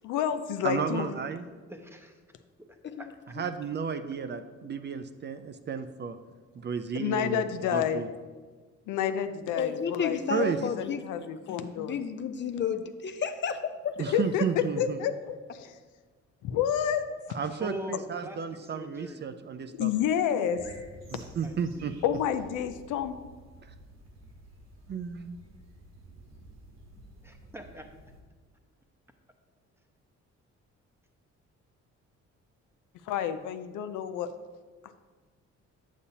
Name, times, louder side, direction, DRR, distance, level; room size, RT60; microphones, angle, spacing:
voice 1, 0.0-1.1 6.9-8.0 8.9-10.2 10.6-12.0 14.1-14.4 14.8-15.7 16.4-17.0 19.8-20.6 22.0-23.2 33.1-34.3, left 9 dB, 90° left, 10 dB, 0.5 m, -29 dB
voice 2, 0.6-1.5 3.4-6.2 6.6-8.1 10.3-10.6 14.0-15.0 17.3-19.9 21.1-21.9 23.6-23.7 24.9-25.4, right 6 dB, 35° right, 9 dB, 0.4 m, -33 dB
voice 3, 1.4-2.2 2.7-3.1 4.6-4.7 17.6-19.2 21.4-21.9 27.2-27.9, right 1 dB, 10° right, 5 dB, 0.8 m, -43 dB
voice 4, 9.6-14.0, left 6 dB, 40° left, 8 dB, 0.5 m, -32 dB
sound 1, 20.5-28.2, right 2 dB, 60° right, 1.4 m, -51 dB
8.3 x 6.9 x 2.8 m, 1.4 s
cardioid pair, 90°, 30 cm